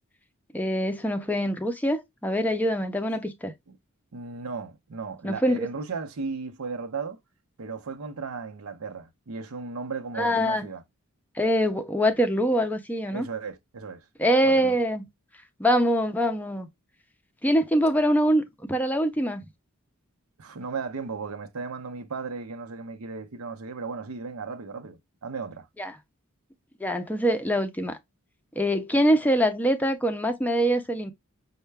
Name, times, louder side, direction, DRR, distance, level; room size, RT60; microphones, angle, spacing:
voice 1, 0.5-3.5 5.2-5.7 10.2-10.7 11.4-13.3 14.2-15.1 15.6-16.7 17.4-19.4 25.8-25.9 26.8-28.0 28.6-31.1, equal, 5° left, 0.4 m, -24 dB
voice 2, 4.1-7.2 7.6-10.8 13.1-14.1 14.4-14.8 20.4-25.7, right 4 dB, 85° right, 0.7 m, -35 dB
5.5 x 2.2 x 3.3 m
head